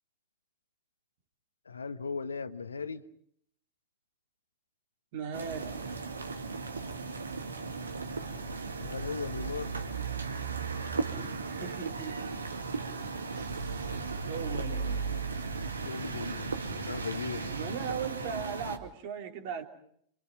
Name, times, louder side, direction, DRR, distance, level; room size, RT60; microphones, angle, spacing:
voice 1, 1.6-3.0 8.8-9.8 15.8-16.5 16.8-17.5, left 5 dB, 75° left, 12 dB, 1.2 m, -37 dB
voice 2, 5.1-5.7 11.5-12.4 13.3-15.0 17.3-19.6, right 7 dB, 50° right, 5 dB, 3.3 m, -39 dB
sound 1, 5.3-18.8, right 4 dB, 75° right, 2.3 m, -36 dB
28.5 x 27.5 x 5.3 m, 0.66 s
figure-of-eight pair, 90°, 0 cm